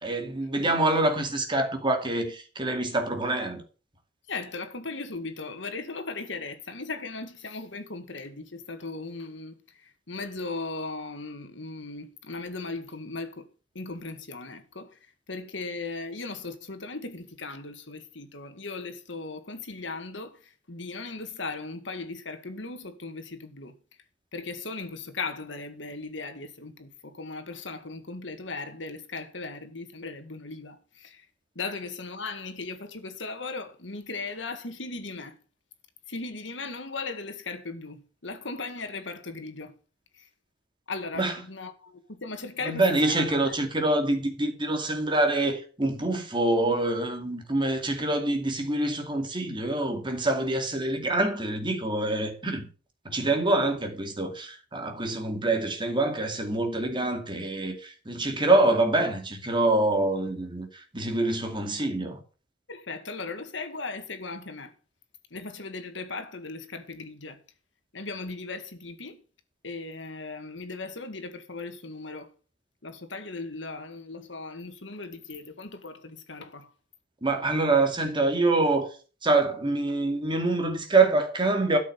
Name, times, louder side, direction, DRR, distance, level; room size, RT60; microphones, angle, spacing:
voice 1, 0.0-3.6 41.2-41.4 42.6-52.7 53.0-62.2 77.2-78.9 79.2-81.8, right 2 dB, 25° right, 2.4 m, -25 dB
voice 2, 4.3-13.5 13.7-23.7 24.3-31.3 31.6-35.4 36.1-39.7 40.1-40.3 40.9-43.5 62.7-64.7 65.3-67.4 67.9-69.2 69.6-72.3 72.8-76.7, left 3 dB, 75° left, 2.0 m, -37 dB
13.0 x 6.5 x 6.9 m
head